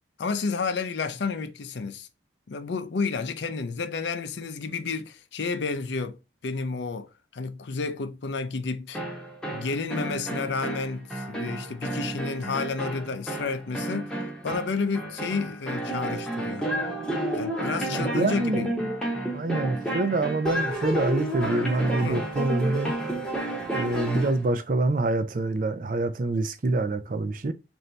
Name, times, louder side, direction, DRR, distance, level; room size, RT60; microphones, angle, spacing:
voice 1, 0.2-2.1 2.5-6.2 6.4-7.1 7.3-9.0 9.5-14.2 14.4-16.7 17.3-18.8 22.0-22.3, left 4 dB, 70° left, 0.5 m, -31 dB
sound 1, 8.9-24.4, right 1 dB, 5° left, 0.9 m, -31 dB
voice 2, 17.9-18.7 19.3-22.9 23.7-27.5, right 2 dB, 45° right, 0.4 m, -26 dB
3.3 x 2.6 x 3.9 m
head